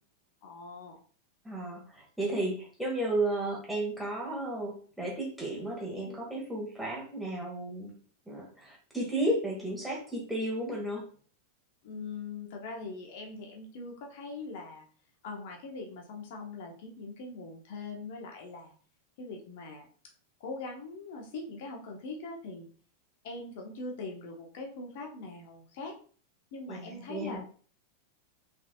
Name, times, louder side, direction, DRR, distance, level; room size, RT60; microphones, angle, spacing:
voice 1, 0.4-1.0 11.8-14.8 15.2-18.8 19.2-19.9 20.4-22.7 23.2-26.0 26.5-27.4, left 3 dB, 50° left, 1 dB, 1.2 m, -42 dB
voice 2, 1.4-7.9 8.3-11.0 26.7-27.4, right 1 dB, ahead, -3 dB, 2.0 m, -33 dB
5.6 x 3.8 x 2.4 m, 0.43 s
figure-of-eight pair, 90°, 0 cm